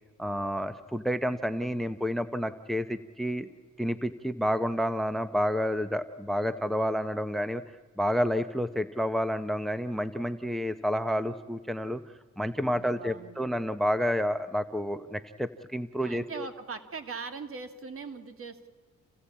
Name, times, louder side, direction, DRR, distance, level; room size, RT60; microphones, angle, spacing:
voice 1, 0.2-3.5 3.8-7.6 8.0-12.0 12.4-16.5, equal, ahead, 12 dB, 0.8 m, -29 dB
voice 2, 12.5-13.5 16.0-18.7, right 5 dB, 45° right, 8 dB, 2.4 m, -41 dB
28.0 x 16.0 x 8.6 m, 1.5 s
cardioid pair, 90°, 30 cm